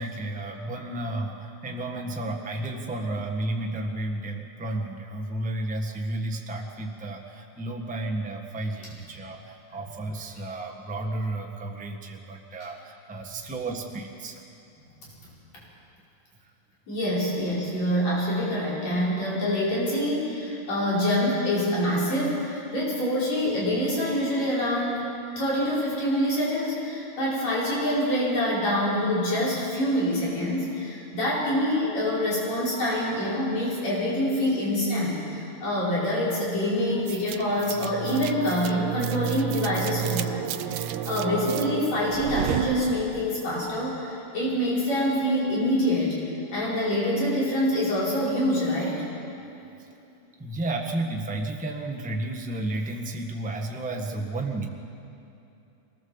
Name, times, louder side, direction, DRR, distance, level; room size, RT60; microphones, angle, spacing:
voice 1, 0.0-14.4 16.4-16.5 49.8-49.9 50.4-54.7, right 2 dB, 5° right, 1 dB, 0.7 m, -32 dB
voice 2, 16.9-46.1 46.5-49.0, equal, 65° left, -7 dB, 6.7 m, -26 dB
sound 1, 37.1-43.4, right 11 dB, 85° right, 2.0 m, -32 dB
23.0 x 19.0 x 7.3 m, 2.8 s
omnidirectional pair, 3.4 m